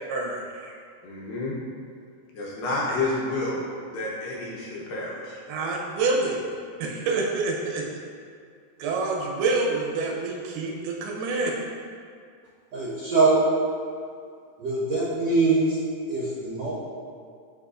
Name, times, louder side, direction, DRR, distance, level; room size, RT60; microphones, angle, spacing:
voice 1, 0.1-0.7 5.5-6.4 6.8-7.8 8.8-11.5, right 3 dB, 85° right, -1 dB, 2.7 m, -27 dB
voice 2, 1.0-1.5 2.3-3.6 3.9-5.4, left 2 dB, 75° left, -5 dB, 2.3 m, -29 dB
voice 3, 12.7-13.4 14.6-15.8 16.1-16.7, right 3 dB, 65° right, -11 dB, 1.7 m, -23 dB
10.5 x 4.2 x 2.5 m, 2.2 s
omnidirectional pair, 4.5 m